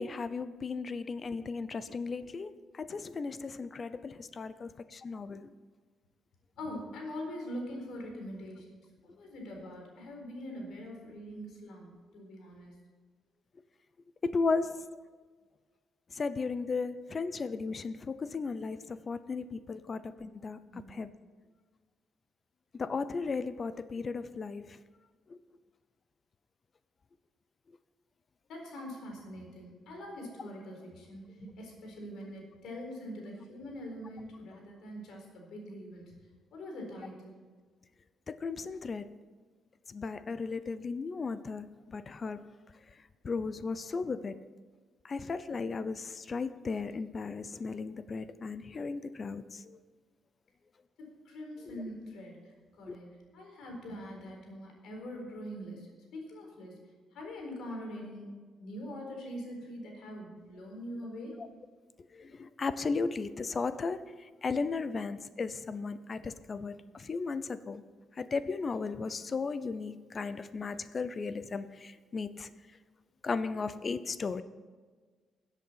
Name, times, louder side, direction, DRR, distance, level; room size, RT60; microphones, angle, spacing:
voice 1, 0.0-5.5 14.2-14.9 16.1-20.6 20.9-21.1 22.7-24.8 25.3-25.4 38.3-39.2 39.9-42.5 43.2-44.3 45.0-49.8 51.7-51.8 52.9-53.0 62.1-67.8 68.2-72.5 73.2-74.4, left 4 dB, 40° left, 14 dB, 0.7 m, -35 dB
voice 2, 6.6-12.7 20.7-20.8 28.5-36.1 36.5-37.4 51.0-56.7 57.1-61.4, equal, 75° left, 1 dB, 4.2 m, -43 dB
14.0 x 8.2 x 5.7 m, 1.5 s
cardioid pair, 90°, 0 cm